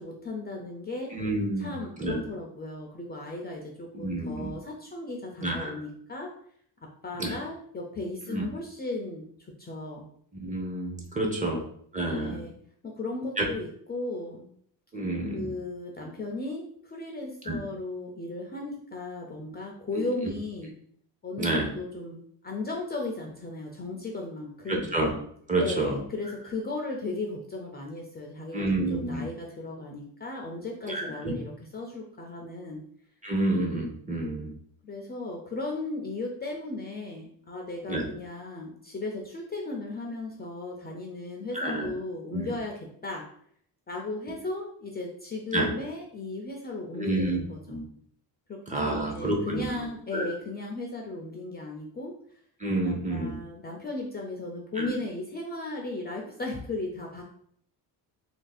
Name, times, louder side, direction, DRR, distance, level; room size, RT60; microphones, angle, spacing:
voice 1, 0.0-1.1 1.6-6.3 6.8-9.3 9.6-10.1 11.2-11.6 12.0-12.5 12.8-14.5 15.3-20.7 21.2-24.9 25.5-32.8 34.8-43.3 43.9-47.8 48.5-52.1 52.8-57.2, left 2 dB, 25° left, 1 dB, 0.5 m, -36 dB
voice 2, 1.1-2.2 3.9-4.5 5.4-5.8 7.2-7.3 8.3-8.5 10.3-11.7 11.9-12.4 13.4-13.5 14.9-15.5 17.4-17.6 21.4-21.7 24.7-25.1 25.5-26.0 28.5-29.2 30.9-31.3 33.2-34.5 37.9-38.0 41.5-41.9 42.3-42.6 45.5-45.7 47.0-47.4 47.7-47.8 48.7-49.9 50.1-50.3 52.6-53.4 54.8-54.9, right 2 dB, 20° right, 0 dB, 0.7 m, -29 dB
2.8 x 2.7 x 4.0 m, 0.64 s
cardioid pair, 125°, 43 cm